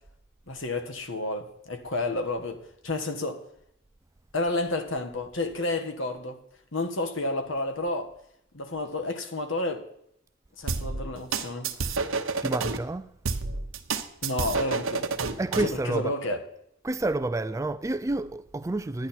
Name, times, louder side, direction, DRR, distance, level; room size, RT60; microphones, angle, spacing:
voice 1, 0.5-3.4 4.3-6.4 6.7-8.1 8.5-9.8 10.6-11.9 14.2-15.1 15.6-16.4, left 2 dB, 70° left, 1.4 m, -31 dB
sound 1, 10.7-12.8 13.3-15.8, right 4 dB, 80° right, 0.9 m, -29 dB
voice 2, 12.4-13.1 15.4-16.1 16.8-19.1, right 2 dB, 15° right, 0.3 m, -29 dB
10.5 x 10.5 x 4.4 m
head